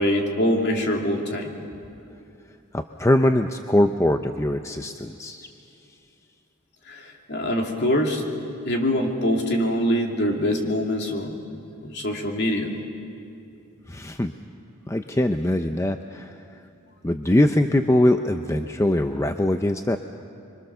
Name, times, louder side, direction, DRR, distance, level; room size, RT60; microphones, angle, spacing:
voice 1, 0.0-1.5 6.9-8.2 8.6-11.5 11.8-12.7, equal, 50° left, 1 dB, 2.6 m, -24 dB
voice 2, 2.7-5.5 13.9-14.3 14.9-16.3 17.0-20.0, left 1 dB, 15° left, 7 dB, 0.5 m, -22 dB
26.5 x 24.0 x 6.8 m, 2.6 s
head